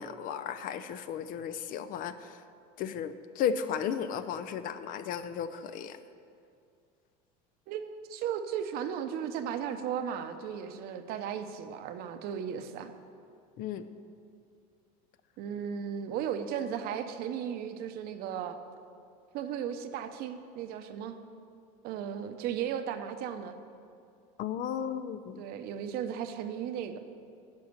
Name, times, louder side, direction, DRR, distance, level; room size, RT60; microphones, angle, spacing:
voice 1, 0.0-2.4 2.8-6.0 13.6-13.9 24.4-25.4, left 8 dB, 50° left, 12 dB, 0.6 m, -34 dB
voice 2, 7.7-12.9 15.4-18.6 19.3-21.2 21.8-23.6 25.4-27.0, right 8 dB, 55° right, 8 dB, 0.8 m, -35 dB
10.5 x 5.7 x 7.9 m, 2.4 s
supercardioid pair, 125°, 19 cm